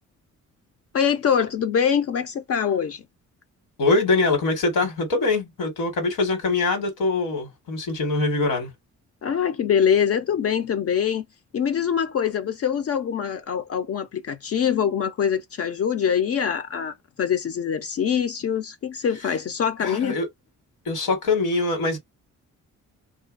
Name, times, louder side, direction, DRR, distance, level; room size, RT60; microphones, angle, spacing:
voice 1, 0.9-3.0 9.2-11.2 11.5-20.2, left 8 dB, 50° left, 0.5 m, -24 dB
voice 2, 3.8-8.7 19.8-20.3 20.8-22.0, left 3 dB, 80° left, 1.4 m, -23 dB
2.7 x 2.4 x 2.3 m
cardioid pair, 115°, 31 cm